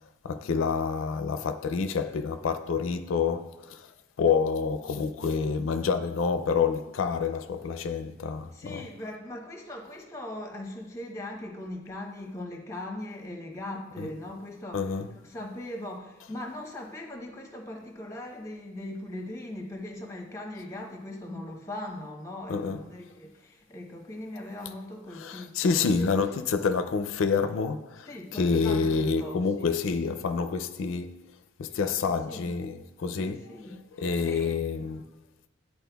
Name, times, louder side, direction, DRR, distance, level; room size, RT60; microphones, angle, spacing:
voice 1, 0.2-3.9 4.2-8.9 14.0-14.1 14.7-15.1 22.5-22.8 25.2-31.2 31.6-33.6 34.0-35.1, left 5 dB, 90° left, 0.4 m, -28 dB
voice 2, 8.5-26.2 28.1-28.8 29.2-29.7 32.0-32.5 33.2-34.6, left 1 dB, 15° left, 0.8 m, -40 dB
10.5 x 4.2 x 2.3 m
head